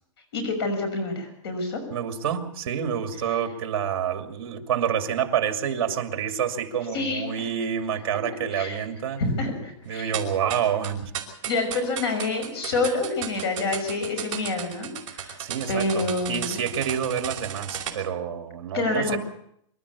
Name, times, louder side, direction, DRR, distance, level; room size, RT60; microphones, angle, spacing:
voice 1, 0.3-1.8 6.9-7.5 8.5-8.8 9.2-10.1 11.4-15.4 15.7-16.6 18.7-19.2, left 3 dB, 50° left, 7 dB, 6.3 m, -27 dB
voice 2, 1.9-9.2 9.9-11.1 15.4-19.2, right 8 dB, 50° right, 6 dB, 2.6 m, -28 dB
sound 1, 10.1-17.9, right 9 dB, 25° right, 4.7 m, -34 dB
26.0 x 13.0 x 8.5 m, 0.71 s
hypercardioid pair, 180°, 17 cm